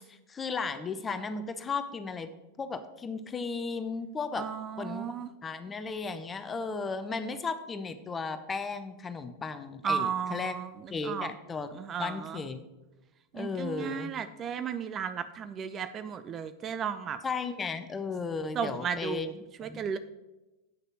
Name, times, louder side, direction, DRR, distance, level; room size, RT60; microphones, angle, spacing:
voice 1, 0.1-2.3 2.6-4.5 4.8-5.1 5.4-10.5 10.9-11.7 12.0-12.6 13.3-14.2 17.2-19.3 19.6-19.8, left 4 dB, 20° left, 10 dB, 0.8 m, -35 dB
voice 2, 4.4-5.3 9.8-10.7 11.0-11.3 11.7-12.4 13.3-17.2 18.5-19.3 19.6-20.0, right 7 dB, 25° right, 11 dB, 0.5 m, -34 dB
8.7 x 6.5 x 6.3 m, 1.0 s
figure-of-eight pair, 90°, 0 cm